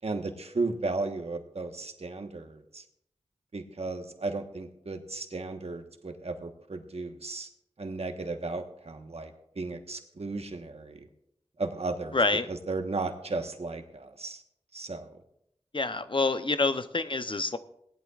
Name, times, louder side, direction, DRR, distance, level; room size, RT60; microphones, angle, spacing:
voice 1, 0.0-2.8 3.5-7.5 7.8-11.1 11.6-12.2 12.5-14.4 14.7-15.2, right 3 dB, 65° right, 5 dB, 1.2 m, -35 dB
voice 2, 12.1-12.5 15.7-17.6, left 3 dB, 45° left, 11 dB, 0.7 m, -27 dB
18.0 x 11.5 x 2.4 m, 0.77 s
wide cardioid pair, 55°, 12 cm